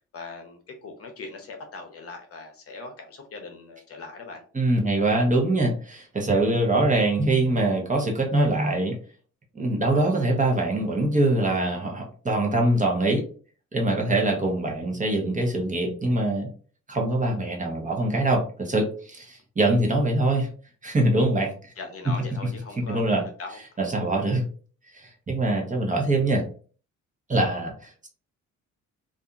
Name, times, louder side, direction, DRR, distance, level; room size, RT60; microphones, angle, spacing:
voice 1, 0.1-4.4 21.8-23.6, left 3 dB, 50° left, 4 dB, 0.7 m, -40 dB
voice 2, 4.5-8.9 9.5-13.2 13.7-16.5 16.9-20.5 20.8-21.7 22.9-23.2 23.8-24.4 24.9-26.4 27.3-28.1, right 2 dB, 25° right, 1 dB, 0.8 m, -23 dB
2.7 x 2.5 x 2.3 m, 0.41 s
cardioid pair, 90°, 30 cm